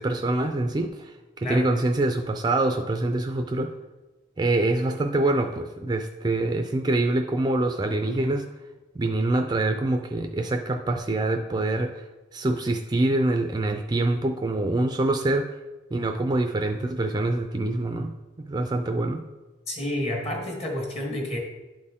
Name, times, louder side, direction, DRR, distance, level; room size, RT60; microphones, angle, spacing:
voice 1, 0.0-3.7 4.4-8.5 9.0-12.0 12.3-15.4 15.9-18.1 18.4-19.2, right 2 dB, 20° right, 5 dB, 0.4 m, -25 dB
voice 2, 19.7-21.4, left 1 dB, 35° left, 0 dB, 1.4 m, -29 dB
11.5 x 4.2 x 3.6 m, 1.1 s
head